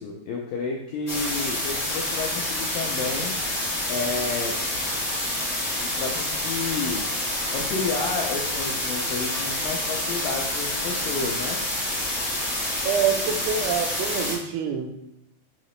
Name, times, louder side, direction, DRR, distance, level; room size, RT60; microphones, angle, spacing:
voice 1, 0.0-3.4 3.9-4.6 5.8-7.1 7.5-11.6, left 4 dB, 85° left, 0 dB, 1.9 m, -31 dB
sound 1, 1.1-14.3, left 1 dB, 60° left, 0.7 m, -28 dB
voice 2, 12.8-14.9, right 7 dB, 85° right, 4 dB, 2.6 m, -26 dB
5.7 x 2.8 x 3.1 m, 0.86 s
omnidirectional pair, 4.4 m